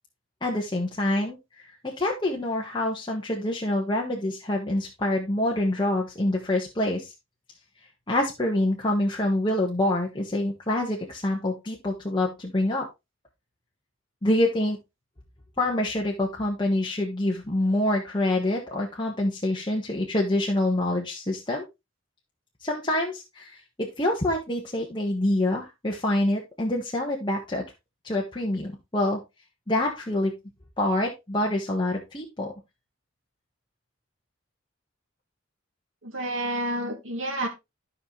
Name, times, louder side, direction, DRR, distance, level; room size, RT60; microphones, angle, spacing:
voice 1, 0.4-7.1 8.1-12.9 14.2-14.8 15.6-21.6 22.6-27.6 28.0-29.2 29.7-30.3 30.8-32.5, left 1 dB, 25° left, -2 dB, 1.5 m, -26 dB
voice 2, 36.0-37.5, right 1 dB, 85° right, 3 dB, 2.7 m, -29 dB
13.0 x 5.6 x 3.2 m, 0.23 s
head